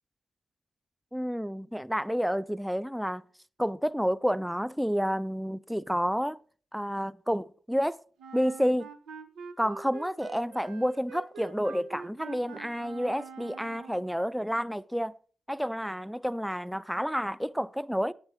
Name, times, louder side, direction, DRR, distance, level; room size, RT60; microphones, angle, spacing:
voice 1, 1.1-3.2 3.6-6.4 6.7-8.0 8.3-8.9 9.6-15.2 15.5-18.1, equal, ahead, 0.5 m, -30 dB
Wind instrument woodwind instrument, 8.2-14.1, right 5 dB, 85° right, 0.9 m, -45 dB
8.9 x 8.9 x 4.5 m
supercardioid pair, 50°, 0 cm